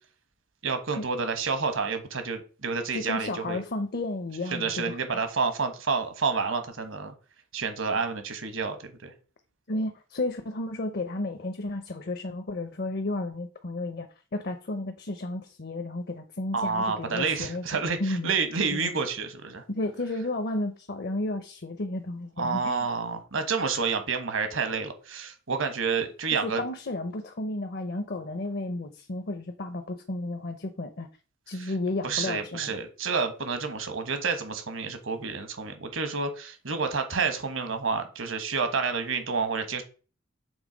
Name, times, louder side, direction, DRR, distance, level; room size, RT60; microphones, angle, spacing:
voice 1, 0.6-3.6 4.5-7.1 7.5-9.1 16.5-19.6 22.4-26.6 31.6-31.7 32.0-39.8, right 5 dB, 80° right, 1.3 m, -29 dB
voice 2, 2.9-5.2 9.7-14.1 14.3-18.3 18.7-19.0 19.7-22.9 26.3-31.1 31.5-32.7, left 2 dB, 55° left, 0.7 m, -33 dB
7.2 x 3.4 x 5.0 m
head